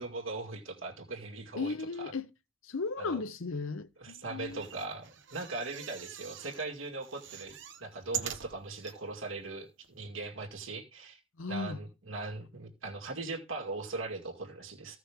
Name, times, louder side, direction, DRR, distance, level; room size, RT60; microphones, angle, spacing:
voice 1, 0.0-2.1 3.0-3.2 4.0-11.2 11.5-15.0, right 3 dB, 80° right, 2.1 m, -40 dB
voice 2, 1.5-2.3 2.6-4.6 11.4-11.8, left 4 dB, 80° left, 0.7 m, -36 dB
sound 1, 4.4-6.7 7.0-9.0 9.6-9.7 9.8-9.9, right 9 dB, 60° right, 1.1 m, -42 dB
15.0 x 6.0 x 3.6 m
head